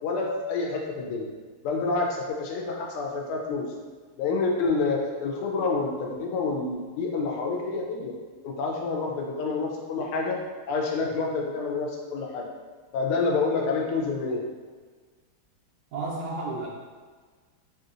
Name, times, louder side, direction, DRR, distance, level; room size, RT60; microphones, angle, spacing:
voice 1, 0.0-1.3 1.6-3.7 4.2-8.1 8.4-10.4 10.7-12.5 12.9-14.4, left 4 dB, 85° left, 0 dB, 1.5 m, -28 dB
voice 2, 15.9-16.7, right 3 dB, 80° right, -5 dB, 0.9 m, -32 dB
3.6 x 2.7 x 2.4 m, 1.5 s
omnidirectional pair, 2.3 m